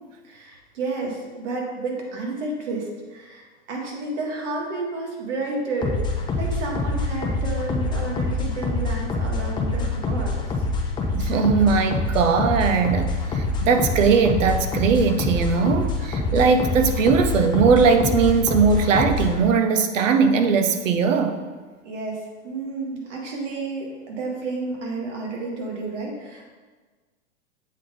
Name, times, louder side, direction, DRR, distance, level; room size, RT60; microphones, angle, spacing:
voice 1, 0.2-10.4 21.8-26.5, right 3 dB, 70° right, -1 dB, 1.7 m, -31 dB
sound 1, 5.8-19.4, left 3 dB, 15° left, 0.4 m, -26 dB
voice 2, 11.1-21.4, right 5 dB, 85° right, 7 dB, 0.8 m, -19 dB
7.5 x 3.4 x 3.7 m, 1.4 s
hypercardioid pair, 130°, 37 cm